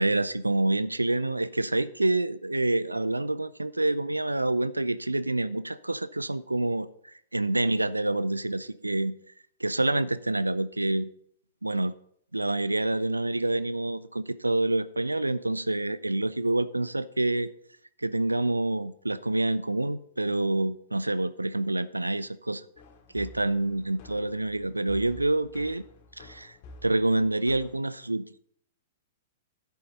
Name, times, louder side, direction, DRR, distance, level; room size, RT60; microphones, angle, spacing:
voice 1, 0.0-6.9 7.3-9.2 9.6-11.1 11.6-11.9 12.3-17.5 18.0-22.6 23.1-25.8 26.2-26.5 26.8-28.4, right 2 dB, 90° right, 17 dB, 0.4 m, -27 dB
sound 1, 22.8-27.8, left 2 dB, 45° left, 2.2 m, -50 dB
11.0 x 8.5 x 4.1 m, 0.66 s
figure-of-eight pair, 105°, 0 cm